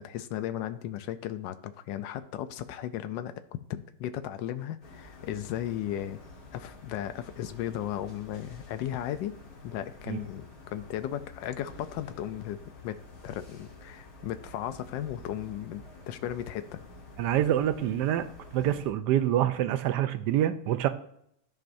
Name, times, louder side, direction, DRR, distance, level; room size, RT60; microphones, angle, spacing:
voice 1, 0.0-3.3 3.7-6.2 6.5-9.4 9.6-13.0 13.2-16.8, left 11 dB, 90° left, 11 dB, 1.3 m, -36 dB
sound 1, 4.8-18.9, left 2 dB, 55° left, 2.0 m, -49 dB
voice 2, 17.2-18.3 18.5-20.9, right 11 dB, 80° right, 11 dB, 1.2 m, -26 dB
13.0 x 4.7 x 2.6 m, 0.71 s
omnidirectional pair, 1.9 m